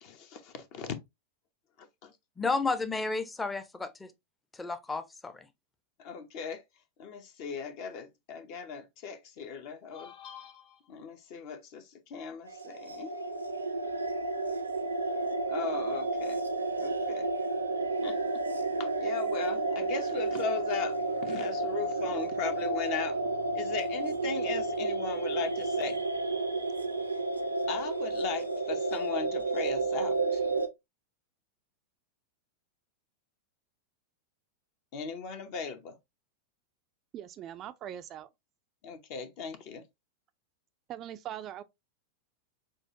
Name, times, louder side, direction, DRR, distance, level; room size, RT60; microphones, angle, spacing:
voice 1, 0.0-1.0 1.8-2.1 6.0-6.6 7.0-13.2 15.5-16.4 16.8-17.3 18.0-18.2 18.8-23.2 23.5-26.0 27.7-30.5 34.9-35.9 38.8-39.8, left 5 dB, 45° left, 0.8 m, -38 dB
voice 2, 2.4-4.1 4.6-5.5, left 3 dB, 10° left, 0.6 m, -32 dB
sound 1, 12.5-30.7, right 2 dB, 80° right, 0.6 m, -31 dB
voice 3, 37.1-38.3 40.9-41.6, right 11 dB, 35° right, 0.4 m, -41 dB
6.2 x 2.4 x 2.7 m
figure-of-eight pair, 90°, 0 cm